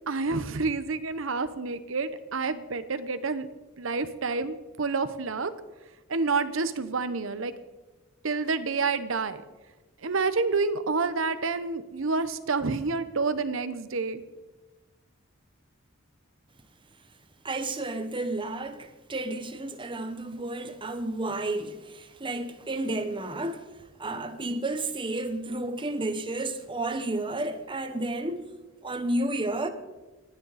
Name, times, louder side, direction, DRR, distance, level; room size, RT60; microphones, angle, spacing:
voice 1, 0.1-3.5 3.8-5.5 6.1-7.5 8.2-9.4 10.0-14.2, right 4 dB, 65° right, 0.9 m, -28 dB
voice 2, 17.4-23.7 24.0-28.5 28.8-29.7, right 2 dB, 25° right, 1.0 m, -31 dB
26.5 x 9.7 x 4.1 m
head